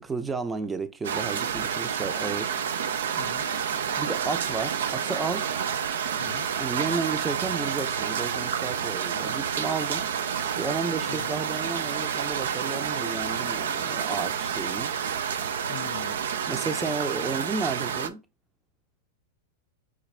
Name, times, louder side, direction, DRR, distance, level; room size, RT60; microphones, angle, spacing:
voice 1, 0.0-2.6 4.0-5.5 6.6-10.0 10.6-14.9 16.5-18.2, right 4 dB, 15° right, 0.6 m, -32 dB
sound 1, 1.0-18.1, right 7 dB, 75° right, 0.4 m, -29 dB
voice 2, 3.2-3.5 6.2-6.5 11.1-11.3 15.7-16.2, left 13 dB, 50° left, 0.3 m, -41 dB
5.0 x 2.4 x 3.3 m
hypercardioid pair, 105°, 0 cm